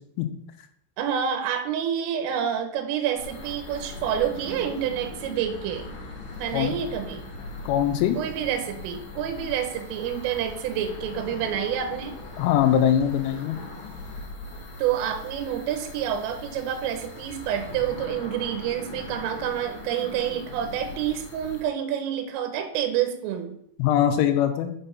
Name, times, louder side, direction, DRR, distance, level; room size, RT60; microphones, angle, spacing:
voice 1, 1.0-5.9 6.4-7.2 8.2-12.2 14.8-23.6, right 9 dB, 85° right, 6 dB, 3.6 m, -28 dB
sound 1, 3.2-21.6, left 3 dB, 50° left, 2.4 m, -40 dB
voice 2, 7.7-8.2 12.4-13.6 23.8-24.7, left 10 dB, 80° left, 7 dB, 3.1 m, -22 dB
6.9 x 6.5 x 5.7 m, 0.73 s
omnidirectional pair, 5.7 m